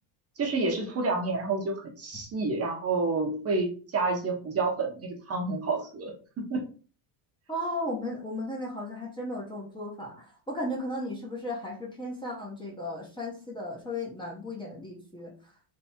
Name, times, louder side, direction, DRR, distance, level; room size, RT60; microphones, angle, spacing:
voice 1, 0.4-6.6, right 3 dB, 30° right, 1 dB, 0.8 m, -29 dB
voice 2, 7.5-15.3, left 1 dB, 10° left, -2 dB, 0.8 m, -35 dB
3.5 x 3.3 x 4.3 m, 0.38 s
cardioid pair, 175°, 49 cm